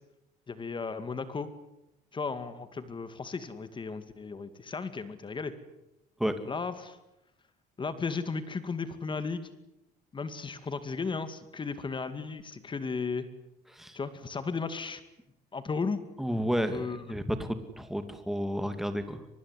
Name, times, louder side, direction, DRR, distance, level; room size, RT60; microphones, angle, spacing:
voice 1, 0.5-1.5 2.1-5.5 6.5-7.0 7.8-9.5 10.1-13.3 13.9-15.0 15.5-16.0 16.7-17.2, left 4 dB, 30° left, 11 dB, 2.2 m, -35 dB
voice 2, 16.2-16.8 17.1-19.2, equal, ahead, 8 dB, 2.6 m, -31 dB
24.0 x 21.5 x 9.9 m, 0.90 s
cardioid pair, 110°, 17 cm